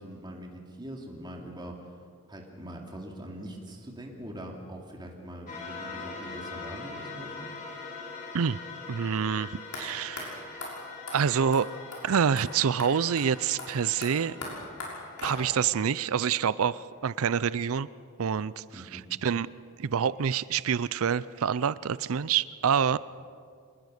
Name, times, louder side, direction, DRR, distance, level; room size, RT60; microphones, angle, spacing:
voice 1, 0.0-1.7 2.3-7.5 18.7-19.0, right 1 dB, 20° right, 0 dB, 3.0 m, -42 dB
sound 1, 5.5-16.2, left 4 dB, 35° left, 4.0 m, -43 dB
voice 2, 8.9-10.7 11.1-11.7 12.0-14.4 15.2-17.9 18.2-19.5 19.8-23.0, right 7 dB, 65° right, 18 dB, 0.5 m, -27 dB
sound 2, 9.7-9.8 10.2-10.3 10.6-10.7 11.1-11.2 11.5-11.6 11.9-12.0 12.4-12.5 12.8-12.9 13.2-13.3 13.6-15.7, left 2 dB, 85° left, 6.4 m, -39 dB
25.5 x 20.0 x 6.6 m, 2.1 s
head